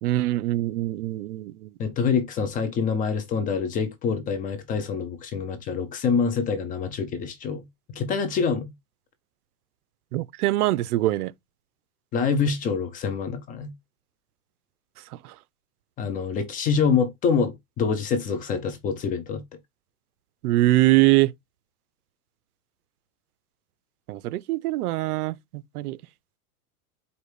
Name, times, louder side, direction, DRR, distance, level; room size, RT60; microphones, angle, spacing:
voice 1, 0.0-1.7 10.1-11.3 15.1-15.3 20.4-21.3 24.1-26.0, right 16 dB, 75° right, 0.5 m, -23 dB
voice 2, 1.8-7.6 7.9-8.7 12.1-13.7 16.0-19.4, left 6 dB, 20° left, 0.5 m, -26 dB
4.8 x 2.6 x 3.2 m
supercardioid pair, 135°, 45 cm